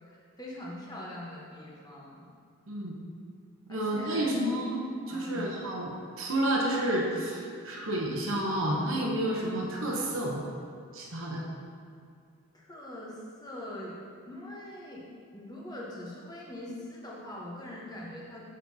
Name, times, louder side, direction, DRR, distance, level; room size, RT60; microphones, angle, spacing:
voice 1, 0.0-2.2 3.7-4.4 5.1-5.7 12.5-14.0 14.3-15.1 15.3-18.4, left 1 dB, 20° left, -4 dB, 1.0 m, -42 dB
voice 2, 3.7-10.4 10.9-11.4, right 1 dB, 60° right, -3 dB, 0.8 m, -30 dB
6.7 x 6.2 x 2.8 m, 2.2 s
head